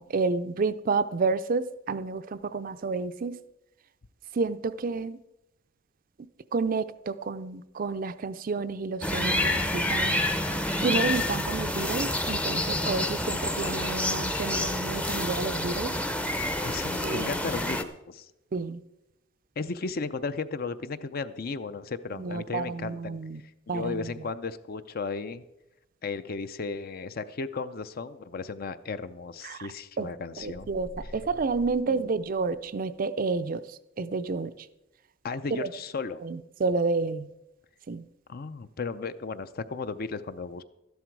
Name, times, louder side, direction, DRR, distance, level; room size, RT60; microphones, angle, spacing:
voice 1, 0.0-3.4 4.3-5.2 6.5-10.2 10.8-16.0 17.0-17.3 18.5-18.8 22.2-23.4 23.7-24.1 29.4-29.7 30.0-30.1 30.4-34.5 35.5-35.7 36.2-37.3 37.9-38.0, right 4 dB, 45° right, 13 dB, 0.5 m, -30 dB
sound 1, 9.0-17.8, left 1 dB, 5° left, 0.6 m, -28 dB
voice 2, 16.6-18.3 19.6-23.2 23.7-25.4 26.0-30.7 31.9-32.1 35.2-36.3 38.3-40.6, left 4 dB, 50° left, 13 dB, 0.5 m, -35 dB
sound 2, 30.4-32.8, left 2 dB, 75° left, 0.9 m, -47 dB
13.0 x 11.5 x 4.6 m, 0.90 s
head